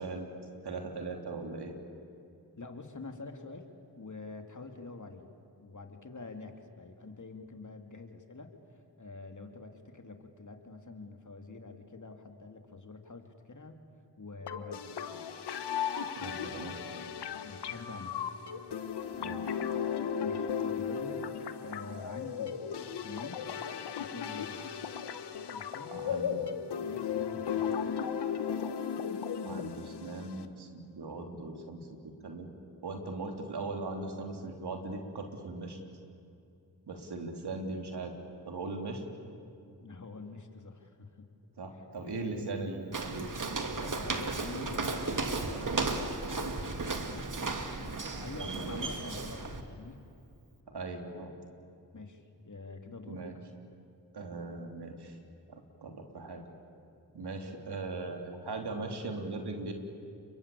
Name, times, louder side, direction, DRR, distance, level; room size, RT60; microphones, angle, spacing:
voice 1, 0.0-1.7 16.1-16.8 19.2-19.6 25.9-26.6 29.4-32.5 32.8-35.8 36.9-38.1 38.5-39.0 41.6-43.5 48.3-48.9 50.7-51.3 53.0-53.4 54.1-55.2 55.5-56.4 57.1-59.7, right 3 dB, 80° right, 3 dB, 3.3 m, -39 dB
voice 2, 2.6-3.7 4.0-5.3 5.6-8.5 9.0-13.8 14.2-15.2 17.4-18.1 20.2-21.3 21.6-22.6 22.9-23.5 24.0-24.6 25.5-26.1 26.8-27.8 39.8-41.2 42.0-42.5 44.0-46.2 46.5-50.0 51.9-53.3, left 3 dB, 50° left, 5 dB, 3.0 m, -46 dB
sound 1, 14.5-30.5, left 7 dB, 90° left, 1.1 m, -36 dB
Walk footsteps, 42.9-49.6, right 3 dB, 50° right, 2.4 m, -34 dB
29.5 x 22.5 x 8.6 m, 2.6 s
cardioid pair, 45°, 39 cm